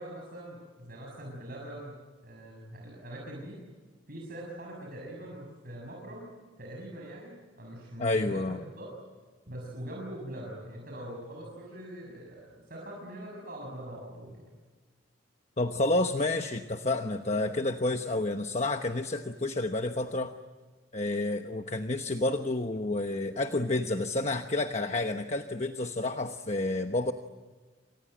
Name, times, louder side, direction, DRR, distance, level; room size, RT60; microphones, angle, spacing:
voice 1, 0.0-1.9 2.2-3.6 4.1-6.3 6.6-9.0 9.5-14.5, right 1 dB, 45° right, -1 dB, 6.6 m, -43 dB
voice 2, 8.0-8.6 15.6-20.3 20.9-27.1, left 2 dB, 35° left, 6 dB, 1.1 m, -30 dB
29.5 x 26.0 x 7.8 m, 1.4 s
head